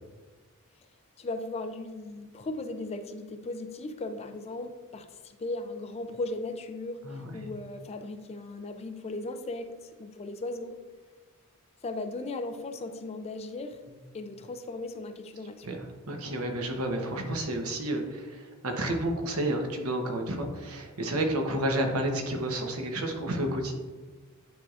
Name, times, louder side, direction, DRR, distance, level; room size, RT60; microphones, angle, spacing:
voice 1, 1.2-10.8 11.8-13.8 14.1-15.7, left 2 dB, 30° left, 8 dB, 0.4 m, -37 dB
voice 2, 7.0-7.4 15.6-15.8 16.1-23.7, right 1 dB, 80° right, 3 dB, 1.0 m, -30 dB
9.2 x 4.6 x 2.5 m, 1.3 s
head